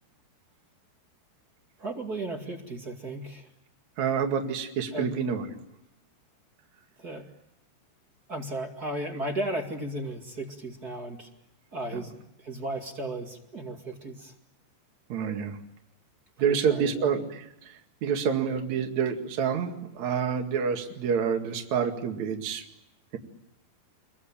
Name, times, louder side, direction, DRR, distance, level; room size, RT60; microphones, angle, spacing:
voice 1, 1.8-3.5 4.9-5.1 7.0-7.3 8.3-11.3 11.7-12.1 12.4-14.3 16.4-17.1, right 1 dB, 30° right, 3 dB, 2.0 m, -35 dB
voice 2, 4.0-5.5 15.1-15.6 16.4-22.6, right 7 dB, 50° right, 4 dB, 3.0 m, -28 dB
28.5 x 23.0 x 8.8 m, 0.84 s
omnidirectional pair, 5.0 m